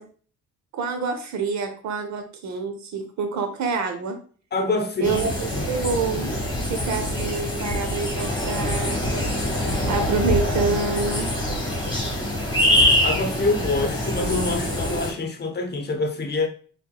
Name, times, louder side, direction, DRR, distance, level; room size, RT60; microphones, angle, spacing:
voice 1, 0.7-4.2 5.0-6.3 6.7-9.2 9.9-11.3, right 4 dB, 65° right, 0.9 m, -27 dB
voice 2, 4.5-5.2 5.5-5.6 13.0-16.5, left 3 dB, 35° left, 0.9 m, -25 dB
sound 1, 5.0-15.1, left 1 dB, 15° left, 1.6 m, -24 dB
4.4 x 3.4 x 2.4 m
cardioid pair, 90°, 30 cm